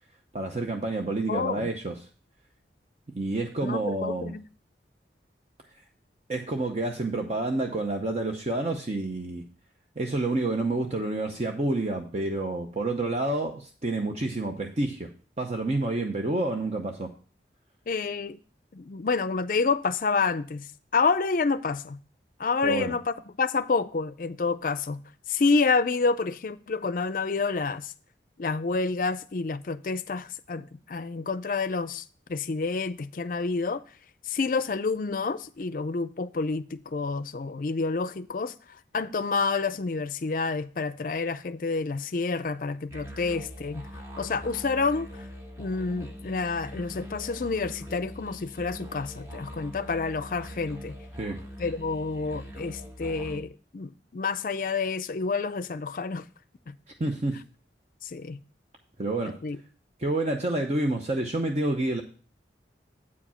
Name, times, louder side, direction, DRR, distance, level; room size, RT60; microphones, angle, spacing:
voice 1, 0.3-2.0 3.2-4.3 6.3-9.5 10.0-15.1 15.4-17.1 22.6-22.9 51.2-51.4 57.0-57.4 59.0-59.4 60.0-62.0, right 2 dB, 35° right, 0.7 m, -28 dB
voice 2, 1.3-1.7 3.6-4.4 17.9-18.4 18.7-22.0 22.4-25.0 25.3-27.9 28.4-33.8 34.3-38.5 38.9-43.9 44.2-45.3 45.6-50.9 51.6-56.2 56.7-56.8 58.0-58.4 59.4-59.6, left 4 dB, 50° left, 0.4 m, -28 dB
sound 1, 42.9-53.4, equal, 15° right, 1.2 m, -42 dB
8.4 x 4.9 x 5.5 m
head